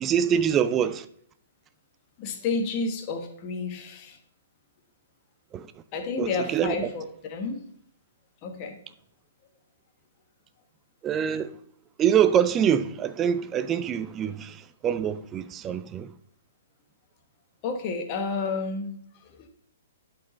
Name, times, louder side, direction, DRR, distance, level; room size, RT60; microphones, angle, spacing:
voice 1, 0.0-1.1 5.5-5.7 6.2-6.7 11.0-11.6 12.0-16.1, right 8 dB, 20° right, 0.3 m, -25 dB
voice 2, 2.2-4.2 5.9-7.6 8.4-8.8 17.6-19.5, left 4 dB, 35° left, 1.1 m, -31 dB
11.0 x 4.3 x 3.1 m
figure-of-eight pair, 120°, 0 cm